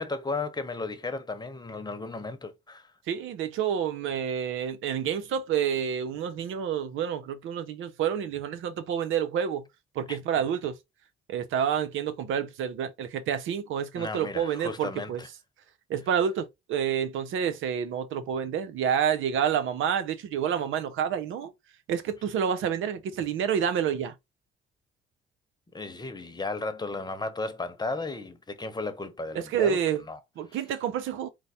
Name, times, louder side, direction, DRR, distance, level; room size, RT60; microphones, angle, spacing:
voice 1, 0.0-2.9 10.1-10.2 14.0-15.3 25.7-29.8 30.1-30.2, left 3 dB, 20° left, 0.9 m, -34 dB
voice 2, 3.1-9.6 9.9-10.8 11.3-15.2 15.9-21.5 21.9-24.1 29.3-30.0 30.4-31.3, right 8 dB, 85° right, 0.7 m, -28 dB
4.6 x 2.2 x 4.2 m
cardioid pair, 90°, 20 cm